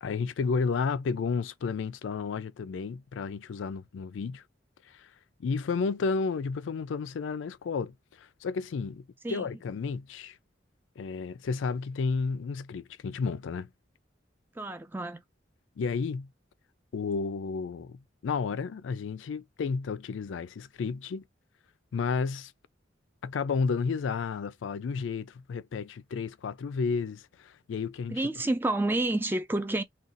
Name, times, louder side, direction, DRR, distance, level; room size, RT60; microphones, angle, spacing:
voice 1, 0.0-4.4 4.8-5.1 5.4-10.4 11.0-13.7 15.8-16.3 16.9-21.2 21.9-22.5 23.2-28.2, left 5 dB, 85° left, 0.4 m, -32 dB
voice 2, 14.6-15.2 28.1-29.8, right 2 dB, 10° right, 0.3 m, -29 dB
2.5 x 2.3 x 3.8 m
head